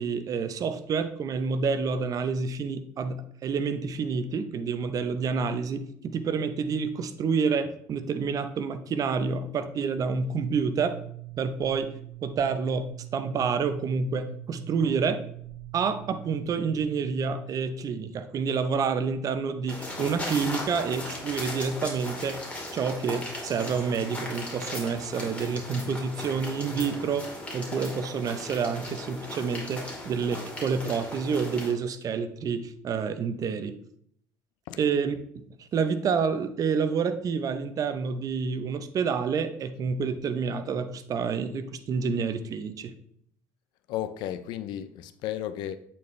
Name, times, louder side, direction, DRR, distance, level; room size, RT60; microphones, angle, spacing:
voice 1, 0.0-11.0 11.4-11.9 12.2-15.2 15.7-22.4 22.7-33.7 34.8-35.2 35.7-42.9, right 5 dB, 50° right, 0.7 m, -28 dB
sound 1, 10.1-17.6, right 19 dB, 30° right, 1.4 m, -43 dB
sound 2, 19.7-31.7, left 1 dB, 15° left, 2.3 m, -37 dB
voice 2, 43.9-45.8, left 11 dB, 75° left, 0.5 m, -33 dB
8.3 x 4.3 x 3.2 m
supercardioid pair, 85°, 8 cm